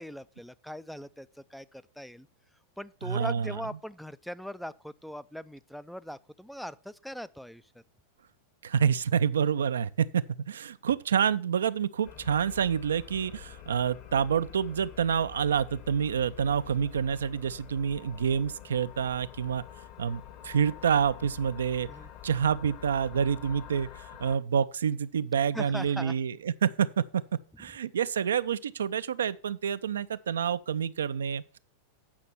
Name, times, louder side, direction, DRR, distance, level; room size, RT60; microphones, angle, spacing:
voice 1, 0.0-2.3 2.8-7.6 21.9-22.1 25.5-26.1, equal, ahead, 0.4 m, -40 dB
voice 2, 3.0-3.6 8.6-19.6 20.0-21.9 22.2-27.2 27.6-31.6, right 7 dB, 65° right, 0.4 m, -28 dB
sound 1, 12.0-24.4, left 11 dB, 45° left, 1.2 m, -47 dB
8.7 x 5.8 x 5.8 m
figure-of-eight pair, 90°, 0 cm